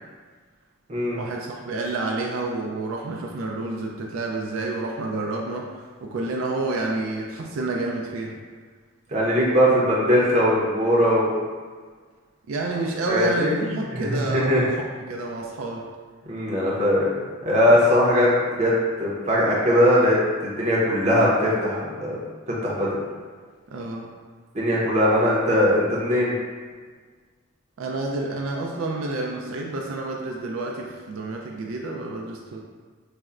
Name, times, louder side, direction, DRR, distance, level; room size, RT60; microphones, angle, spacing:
voice 1, 1.2-8.4 12.5-14.7 15.1-15.8 18.0-18.1 23.7-24.1 27.8-32.6, right 2 dB, 80° right, 0 dB, 0.4 m, -29 dB
voice 2, 9.1-11.3 13.1-13.5 13.9-14.6 16.3-17.1 17.4-18.7 19.0-22.2 22.5-23.0 24.5-26.3, equal, 30° right, -6 dB, 0.6 m, -20 dB
4.1 x 2.1 x 2.4 m, 1.5 s
head